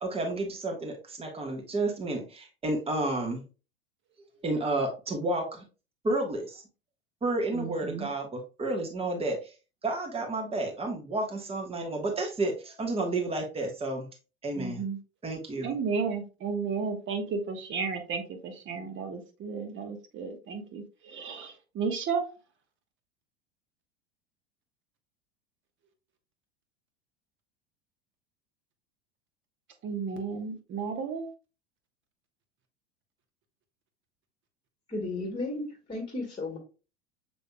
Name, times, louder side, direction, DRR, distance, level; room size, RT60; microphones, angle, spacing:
voice 1, 0.0-3.4 4.4-5.6 6.0-6.6 7.2-9.5 9.8-14.1 14.4-14.8 15.2-15.8, right 2 dB, 15° right, 2 dB, 1.4 m, -31 dB
voice 2, 7.5-8.1 14.6-15.0 15.6-22.2 29.8-31.3, right 5 dB, 35° right, 7 dB, 1.3 m, -33 dB
voice 3, 34.9-36.6, left 2 dB, 15° left, 0 dB, 1.6 m, -34 dB
7.1 x 3.3 x 2.2 m, 0.32 s
hypercardioid pair, 85°, 34 cm